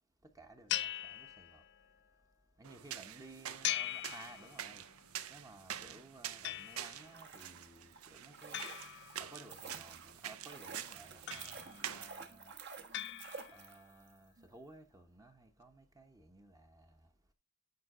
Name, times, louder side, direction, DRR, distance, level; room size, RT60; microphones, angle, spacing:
voice 1, 0.3-1.6 2.6-4.8 5.3-8.6 9.2-12.5 13.5-17.0, right 2 dB, 15° right, 0.9 m, -56 dB
sound 1, 0.7-1.9 3.6-4.9 6.4-7.2 8.5-9.7 11.3-12.0 12.9-13.8, left 13 dB, 50° left, 0.4 m, -41 dB
sound 2, 2.6-12.1, right 10 dB, 75° right, 0.6 m, -47 dB
sound 3, 6.9-14.1 14.4-14.5, right 5 dB, 50° right, 1.3 m, -51 dB
9.5 x 5.2 x 3.7 m
head